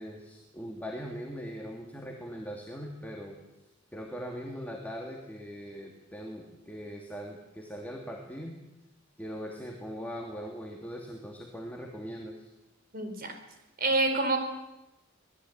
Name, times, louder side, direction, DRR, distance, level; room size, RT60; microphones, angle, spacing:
voice 1, 0.0-3.4 3.9-8.6 9.2-12.5, equal, 10° left, 0 dB, 2.7 m, -40 dB
voice 2, 12.9-13.4 13.8-14.4, right 2 dB, 45° right, 6 dB, 4.9 m, -27 dB
24.5 x 19.0 x 9.0 m, 0.97 s
head